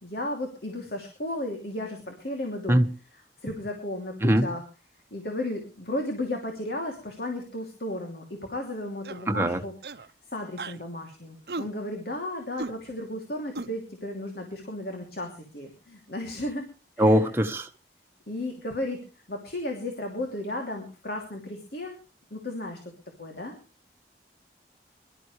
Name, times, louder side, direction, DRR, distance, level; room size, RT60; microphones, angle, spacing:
voice 1, 0.0-2.8 3.1-4.6 5.1-9.7 10.3-16.6 17.0-17.4 18.3-19.0 19.3-21.9 22.3-22.8 23.2-23.6, left 1 dB, 60° left, 2.9 m, -34 dB
sound 1, 9.0-9.3 9.8-10.1 10.6-10.8 11.5-11.7 12.6-12.7 13.6-13.7, right 3 dB, 65° right, 0.9 m, -35 dB
voice 2, 9.3-9.6 17.0-17.7, equal, 15° right, 1.3 m, -21 dB
23.5 x 12.5 x 3.3 m
head